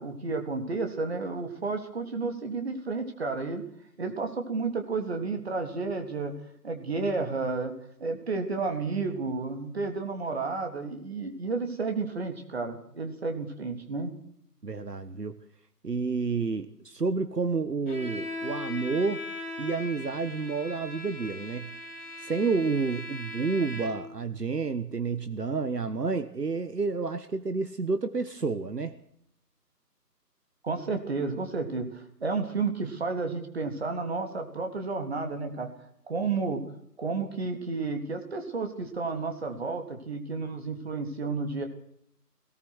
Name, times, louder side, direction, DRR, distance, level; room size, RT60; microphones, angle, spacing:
voice 1, 0.0-3.6 4.0-6.3 6.6-7.7 8.0-14.1 30.6-35.7 36.1-36.6 37.0-41.7, right 4 dB, 40° right, 5 dB, 3.5 m, -31 dB
voice 2, 14.6-15.3 15.8-19.2 19.6-21.7 22.2-28.9, right 4 dB, 70° right, 11 dB, 1.6 m, -30 dB
Bowed string instrument, 17.9-24.2, left 2 dB, ahead, 4.3 m, -39 dB
21.0 x 19.0 x 6.4 m, 0.68 s
figure-of-eight pair, 160°, 49 cm